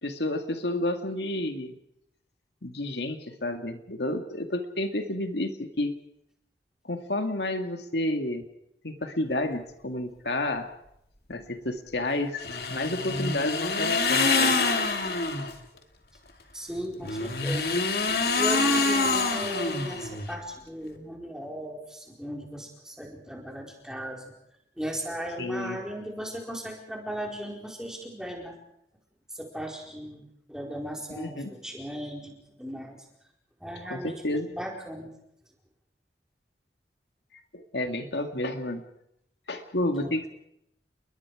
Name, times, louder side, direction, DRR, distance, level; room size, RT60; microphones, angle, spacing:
voice 1, 0.0-1.8 2.6-6.0 6.8-8.4 8.8-10.7 11.3-14.6 25.4-25.8 31.2-31.5 33.8-34.5 37.5-38.8 39.5-40.3, left 1 dB, 75° left, 6 dB, 2.0 m, -30 dB
sound 1, 12.4-15.5 17.0-20.3, left 3 dB, 60° left, 2.6 m, -26 dB
voice 2, 16.5-18.0 18.3-24.2 24.8-28.5 29.3-33.0 33.6-35.1 40.0-40.1, equal, 5° right, -1 dB, 4.6 m, -37 dB
30.0 x 22.0 x 4.9 m, 0.79 s
head